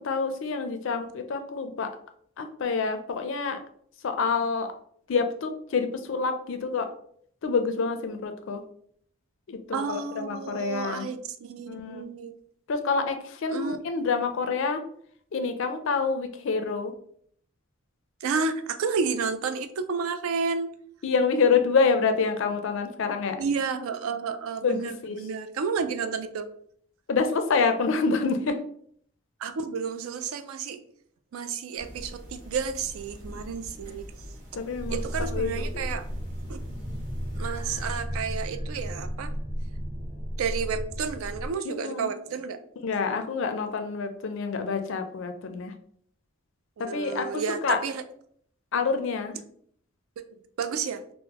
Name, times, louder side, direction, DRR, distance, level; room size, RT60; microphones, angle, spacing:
voice 1, 0.0-1.9 2.4-3.6 4.0-4.7 5.1-6.9 7.4-8.6 9.5-11.1 11.7-12.1 12.7-14.8 15.3-16.9 21.0-23.4 24.6-25.2 27.1-28.6 34.5-35.0 35.3-35.6 41.6-42.1 42.8-45.7 46.8-47.8 48.7-49.4, left 4 dB, 60° left, 7 dB, 0.4 m, -27 dB
voice 2, 9.7-12.3 13.5-13.8 18.2-20.7 23.4-26.5 29.4-30.8 31.3-34.0 34.9-36.0 36.5-36.6 37.3-39.3 40.4-42.6 46.8-48.0 50.6-51.0, right 5 dB, 70° right, 9 dB, 0.4 m, -31 dB
sound 1, 31.8-38.0, equal, 40° right, 1.1 m, -44 dB
sound 2, 34.8-41.5, equal, 10° right, 0.6 m, -34 dB
3.6 x 2.0 x 2.9 m, 0.63 s
head